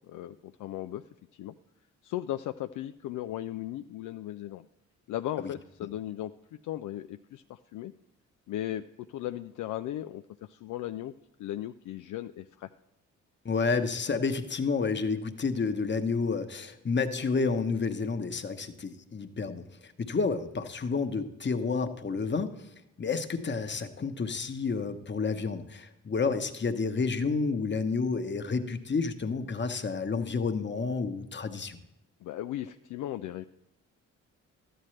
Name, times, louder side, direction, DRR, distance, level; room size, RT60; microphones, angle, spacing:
voice 1, 0.1-1.0 1.3-1.5 2.0-4.7 5.1-6.3 6.6-7.9 8.5-8.8 9.1-11.1 11.4-12.7 32.2-33.5, left 13 dB, 60° left, 9 dB, 0.5 m, -36 dB
voice 2, 13.4-22.5 23.0-31.8, left 4 dB, 30° left, 7 dB, 1.1 m, -30 dB
13.0 x 8.9 x 3.3 m, 0.86 s
hypercardioid pair, 45°, 36 cm